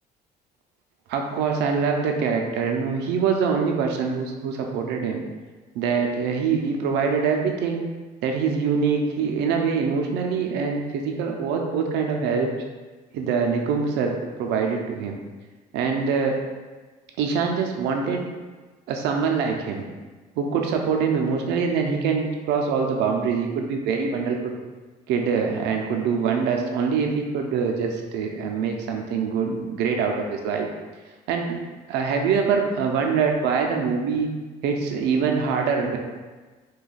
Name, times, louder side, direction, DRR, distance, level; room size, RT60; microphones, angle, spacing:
voice 1, 1.1-5.2 5.7-7.8 8.2-12.5 13.1-14.1 14.4-15.2 15.7-16.4 17.2-18.3 18.9-19.8 20.4-24.5 25.1-30.7 31.3-31.6 31.9-34.3 34.6-36.0, right 5 dB, 85° right, 2 dB, 0.5 m, -24 dB
2.7 x 2.3 x 3.9 m, 1.3 s
cardioid pair, 110°, 17 cm